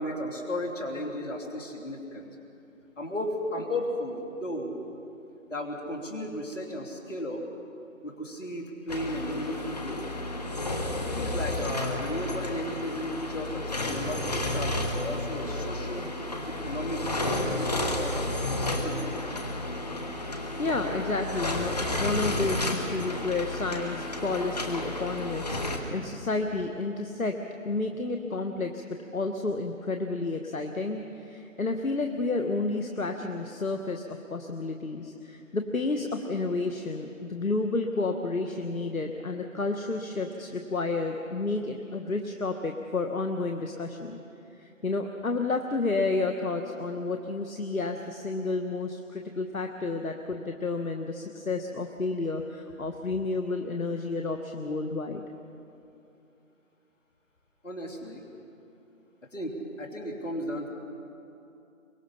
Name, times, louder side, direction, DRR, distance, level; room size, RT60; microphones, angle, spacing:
voice 1, 0.0-2.3 3.0-4.8 5.5-7.4 8.0-10.1 11.0-16.1 16.5-18.3 18.6-19.1 57.6-58.2 59.3-60.7, left 1 dB, 60° left, 1 dB, 3.2 m, -35 dB
sound 1, 8.9-25.8, left 1 dB, 30° left, 1.3 m, -32 dB
voice 2, 20.6-27.4 27.6-44.2 44.6-55.2, left 3 dB, 75° left, 5 dB, 1.4 m, -31 dB
23.5 x 21.5 x 5.7 m, 2.8 s
figure-of-eight pair, 165°, 42 cm